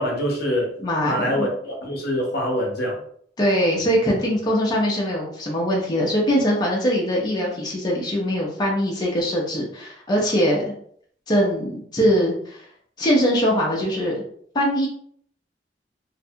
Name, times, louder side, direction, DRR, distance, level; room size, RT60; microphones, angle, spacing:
voice 1, 0.0-0.7 1.0-3.0, equal, 60° left, -1 dB, 0.7 m, -24 dB
voice 2, 0.8-1.5 3.4-10.7 11.3-12.6 13.0-14.2 14.5-14.9, equal, 25° left, -3 dB, 0.6 m, -22 dB
2.5 x 2.2 x 2.7 m, 0.63 s
head